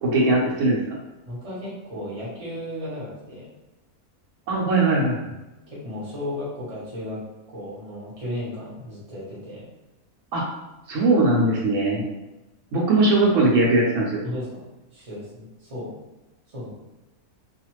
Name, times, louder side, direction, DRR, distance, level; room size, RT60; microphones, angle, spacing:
voice 1, 0.0-0.8 4.5-5.3 10.3-10.4 10.9-12.0 12.7-14.2, right 2 dB, 65° right, -3 dB, 1.1 m, -20 dB
voice 2, 1.3-3.5 5.3-9.7 14.2-14.7 14.9-15.9 16.5-16.7, left 1 dB, 30° right, -7 dB, 0.9 m, -35 dB
2.5 x 2.4 x 3.0 m, 1.0 s
omnidirectional pair, 1.5 m